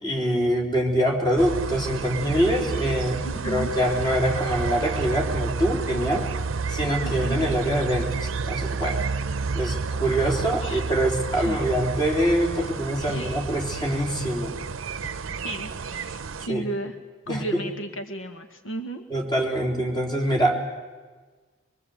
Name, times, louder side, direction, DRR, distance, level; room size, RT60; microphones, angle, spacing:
voice 1, 0.0-6.3 6.7-9.0 9.5-14.5 16.5-16.6 17.3-17.6 19.1-20.6, equal, 20° left, 1 dB, 3.6 m, -24 dB
sound 1, 1.4-16.5, right 4 dB, 90° right, 0.7 m, -30 dB
voice 2, 3.2-3.8 7.0-7.5 10.6-10.8 11.4-11.6 12.6-12.7 13.0-13.5 15.0-15.1 15.4-17.0 17.3-19.0, right 1 dB, 75° left, 7 dB, 1.5 m, -34 dB
23.5 x 23.0 x 8.1 m, 1.3 s
head